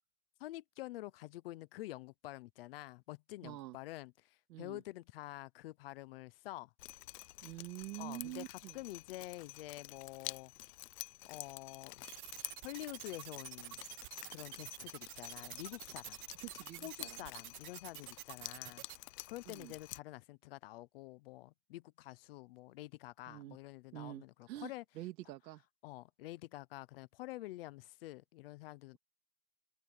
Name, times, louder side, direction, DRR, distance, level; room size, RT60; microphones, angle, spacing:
voice 1, 0.4-6.7 8.0-10.5 11.3-12.1 12.6-13.8 14.3-16.2 16.8-18.8 19.3-24.8 25.8-29.0, left 17 dB, 40° left, 0.4 m, -48 dB
voice 2, 3.4-3.8 4.5-4.8 7.4-8.8 16.4-17.2 19.5-19.7 23.3-23.6 23.9-25.6, right 16 dB, 90° right, 2.1 m, -47 dB
Drip, 6.8-20.0, left 18 dB, 75° left, 0.9 m, -50 dB
sound 1, 12.0-19.0, right 18 dB, 60° right, 1.7 m, -48 dB
supercardioid pair, 170°, 49 cm